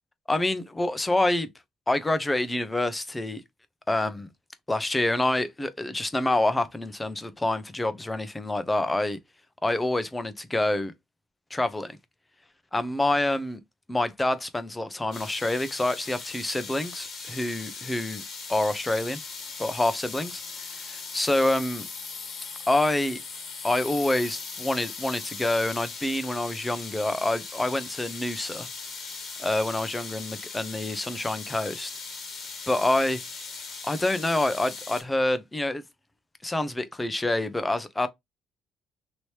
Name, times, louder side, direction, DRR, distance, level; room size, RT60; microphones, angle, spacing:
voice 1, 0.3-1.5 1.9-3.4 3.9-4.3 4.7-9.2 9.6-10.9 11.5-12.0 12.7-13.6 13.9-18.2 18.5-19.2 19.6-20.4 21.1-21.8 22.7-23.2 23.6-28.7 29.4-32.0 32.7-33.2 33.8-35.8 36.4-38.1, left 1 dB, 15° left, 0.5 m, -27 dB
sound 1, 15.1-35.0, left 4 dB, 60° left, 1.4 m, -39 dB
3.0 x 2.8 x 3.1 m
cardioid pair, 100°, 0 cm